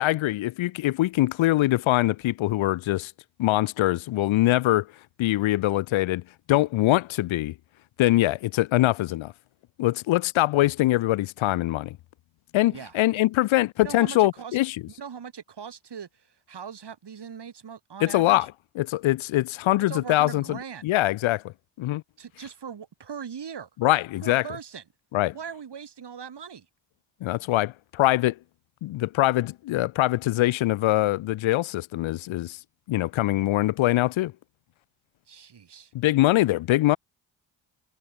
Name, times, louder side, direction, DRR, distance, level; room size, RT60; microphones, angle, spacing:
voice 1, 0.0-3.1 3.4-4.9 5.2-6.2 6.5-7.5 8.0-9.3 9.8-12.0 12.5-14.8 18.0-18.5 18.8-22.0 23.8-24.4 25.1-25.3 27.2-28.4 28.8-32.6 32.9-34.3 35.9-37.0, left 16 dB, 80° left, 0.7 m, -23 dB
voice 2, 13.8-14.6 15.0-18.4 19.9-20.9 22.2-23.7 24.2-24.8 25.3-26.7 35.3-35.9, right 7 dB, 60° right, 5.2 m, -40 dB
cardioid pair, 70°, 47 cm